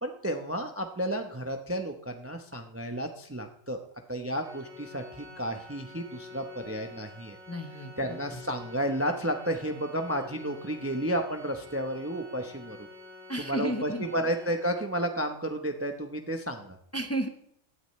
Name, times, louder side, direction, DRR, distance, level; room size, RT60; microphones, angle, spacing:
voice 1, 0.0-3.8 4.1-7.4 8.0-12.9 13.4-16.8, right 1 dB, 10° right, 5 dB, 0.8 m, -32 dB
Organ, 4.4-15.1, left 2 dB, 60° right, 2.5 m, -48 dB
voice 2, 7.5-7.9 13.3-14.0 16.9-17.3, right 1 dB, 10° left, 6 dB, 1.0 m, -32 dB
18.0 x 13.0 x 3.2 m, 0.70 s
omnidirectional pair, 1.4 m